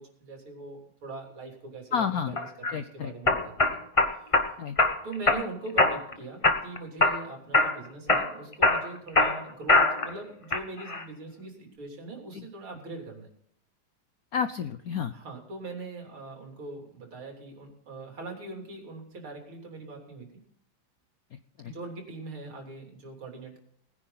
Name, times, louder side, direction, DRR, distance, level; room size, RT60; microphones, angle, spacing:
voice 1, 0.0-3.5 5.0-13.3 15.1-20.3 21.7-23.6, right 3 dB, 75° right, 1 dB, 4.1 m, -41 dB
voice 2, 1.9-2.4 2.7-3.1 4.6-4.8 12.3-12.5 14.3-15.1 21.3-21.7, left 7 dB, 70° left, 10 dB, 0.8 m, -31 dB
sound 1, 2.4-2.7 3.3-4.5 4.8-5.4 5.8-6.1 6.4-7.2 7.5-7.8 8.1-10.1 10.5-11.0, left 2 dB, 20° left, 0.9 m, -22 dB
20.0 x 10.0 x 4.0 m, 0.67 s
omnidirectional pair, 2.3 m